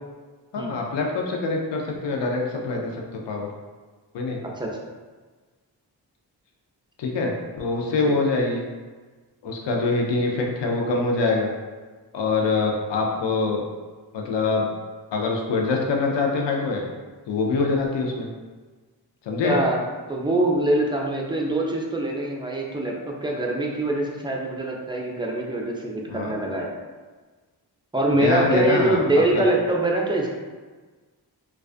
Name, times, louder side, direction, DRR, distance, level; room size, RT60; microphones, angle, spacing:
voice 1, 0.5-3.5 4.1-4.4 7.0-8.6 9.4-11.5 12.1-13.6 14.1-14.7 15.1-16.9 17.3-18.3 19.2-19.6 26.1-26.4 28.2-29.0 29.3-29.4, left 3 dB, 75° left, 0 dB, 0.5 m, -24 dB
voice 2, 19.4-19.8 20.1-26.7 27.9-30.3, right 1 dB, 10° right, -1 dB, 0.4 m, -24 dB
2.3 x 2.3 x 2.4 m, 1.4 s
cardioid pair, 45°, 43 cm